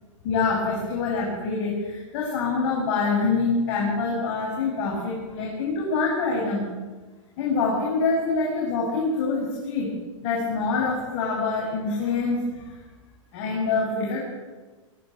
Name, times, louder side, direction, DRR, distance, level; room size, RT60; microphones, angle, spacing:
voice 1, 0.2-6.6 7.4-9.9 10.2-12.7 13.3-14.2, left 4 dB, 40° left, -3 dB, 7.0 m, -25 dB
22.5 x 14.0 x 9.1 m, 1.3 s
hypercardioid pair, 155°, 17 cm